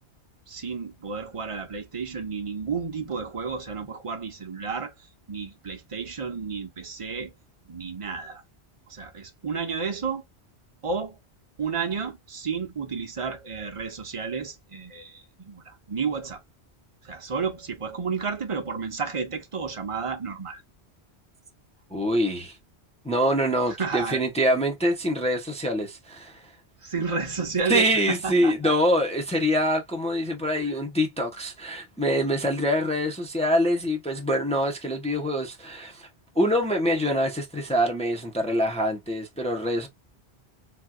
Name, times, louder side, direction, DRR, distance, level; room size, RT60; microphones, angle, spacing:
voice 1, 0.5-4.9 5.3-7.3 7.7-8.4 8.9-10.2 10.8-11.2 11.6-16.4 17.0-20.6 23.8-24.2 26.8-28.7 30.6-30.8, right 5 dB, 35° right, 0.7 m, -31 dB
voice 2, 21.9-22.5 23.0-26.3 27.7-36.1 36.4-39.9, equal, 5° left, 0.6 m, -25 dB
3.5 x 2.9 x 2.2 m
omnidirectional pair, 1.1 m